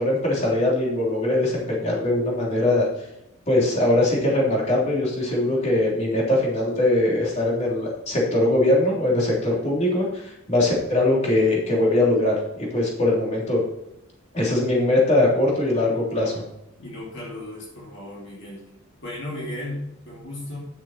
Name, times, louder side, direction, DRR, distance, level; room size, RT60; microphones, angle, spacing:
voice 1, 0.0-2.9 3.5-12.4 12.7-13.6 14.3-16.4, left 1 dB, 35° left, -4 dB, 3.3 m, -21 dB
voice 2, 16.8-18.7 19.0-20.6, left 1 dB, 55° left, -4 dB, 2.5 m, -35 dB
10.5 x 7.4 x 4.4 m, 0.84 s
head